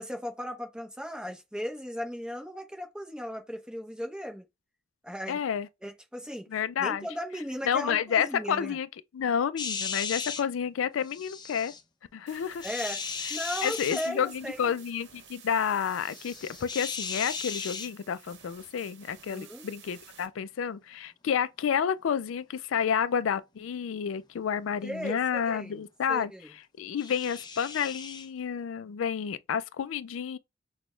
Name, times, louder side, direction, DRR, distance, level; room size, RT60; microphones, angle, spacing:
voice 1, 0.0-4.4 5.0-5.4 5.8-8.8 12.6-14.7 19.3-19.7 24.8-26.5, equal, 5° right, 0.9 m, -37 dB
voice 2, 5.3-5.7 6.5-7.1 7.7-8.9 9.1-11.7 12.1-12.7 13.6-26.3 26.8-30.4, left 7 dB, 85° left, 0.4 m, -30 dB
sound 1, 9.6-10.4 11.1-11.8 12.6-14.1 16.0-17.9 27.0-28.3, left 5 dB, 20° left, 0.5 m, -36 dB
sound 2, 12.3-20.3, right 7 dB, 60° right, 1.0 m, -53 dB
6.1 x 2.3 x 3.1 m
head